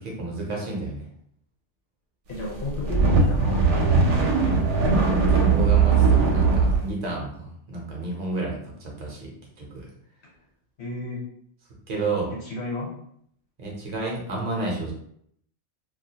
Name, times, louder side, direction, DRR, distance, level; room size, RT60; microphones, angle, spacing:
voice 1, 0.0-1.1 5.0-9.9 11.9-12.3 13.6-14.9, right 2 dB, 45° right, -2 dB, 0.6 m, -31 dB
voice 2, 2.3-4.0 10.8-11.2 12.4-12.9, left 1 dB, 65° left, -3 dB, 0.9 m, -33 dB
sound 1, 2.6-6.8, right 4 dB, 75° right, 0.9 m, -19 dB
2.3 x 2.1 x 2.7 m, 0.68 s
omnidirectional pair, 1.3 m